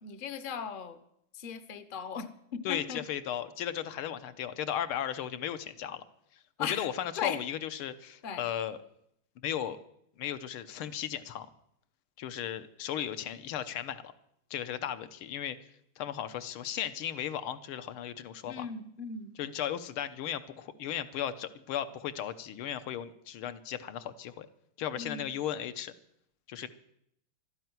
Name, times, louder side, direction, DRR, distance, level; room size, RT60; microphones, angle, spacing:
voice 1, 0.0-1.0 1.3-3.0 6.6-6.9 7.2-7.4 8.2-8.4 18.4-19.4 25.0-25.3, left 7 dB, 45° left, 13 dB, 0.6 m, -37 dB
voice 2, 2.7-6.0 6.7-8.8 9.4-9.8 10.2-11.5 12.2-14.1 14.5-15.6 16.0-18.7 19.4-24.5 24.8-25.9 26.5-26.7, left 10 dB, 85° left, 12 dB, 1.8 m, -36 dB
12.5 x 10.5 x 9.4 m, 0.74 s
omnidirectional pair, 2.3 m